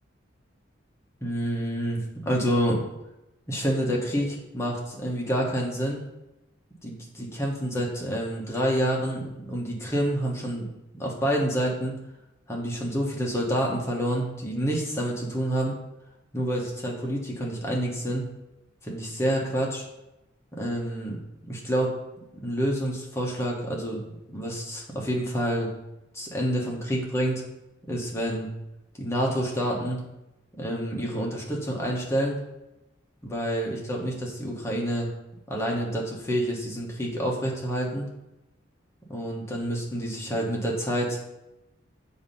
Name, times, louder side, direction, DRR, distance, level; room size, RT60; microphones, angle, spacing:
voice 1, 1.2-2.8 3.5-6.0 6.8-10.7 10.9-12.0 12.5-15.8 16.3-18.3 18.8-19.8 20.6-22.0 22.3-24.0 24.3-25.7 26.1-27.4 27.9-28.5 29.0-30.0 30.5-32.4 33.2-35.1 35.5-38.1 39.1-41.2, equal, 15° left, -2 dB, 1.0 m, -28 dB
6.9 x 2.7 x 5.3 m, 0.95 s
head